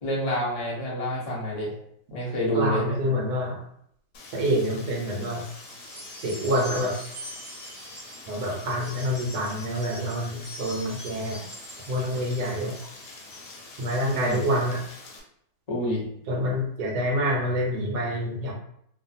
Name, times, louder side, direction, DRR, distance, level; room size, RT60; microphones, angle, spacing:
voice 1, 0.0-1.7 2.1-3.0 14.1-14.4 15.7-16.0, equal, 40° left, -5 dB, 0.5 m, -28 dB
voice 2, 2.4-3.6 4.3-5.4 6.2-6.9 8.3-11.4 11.9-12.7 13.8-14.8 16.3-18.5, equal, 70° right, 0 dB, 1.2 m, -27 dB
Rain, 4.1-15.2, left 3 dB, 75° left, 1.1 m, -46 dB
sound 1, 5.1-14.5, equal, 40° right, 0.7 m, -44 dB
2.9 x 2.3 x 2.6 m, 0.70 s
omnidirectional pair, 1.9 m